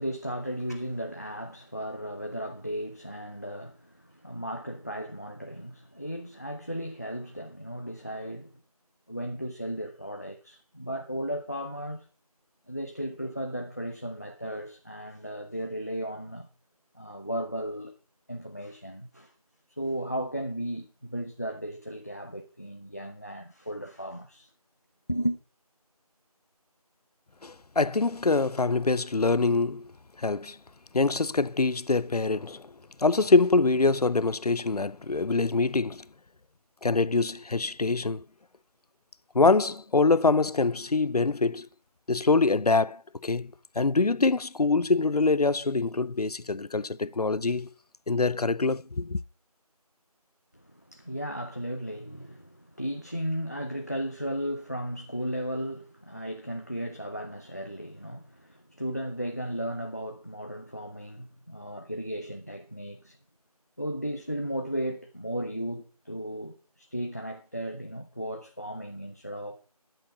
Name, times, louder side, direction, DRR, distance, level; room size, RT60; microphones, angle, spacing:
voice 1, 0.0-8.6 9.1-12.1 12.7-16.5 16.9-17.9 18.3-19.3 19.8-24.5 25.1-25.4 50.5-63.2 63.8-69.6, equal, 25° left, 0.6 m, -35 dB
voice 2, 27.4-29.8 30.2-30.6 30.9-32.6 33.0-36.0 36.8-38.2 39.3-41.7 42.1-43.5 43.8-47.7 48.1-49.2, left 3 dB, 75° left, 0.7 m, -24 dB
10.0 x 9.1 x 5.9 m
figure-of-eight pair, 175°, 20 cm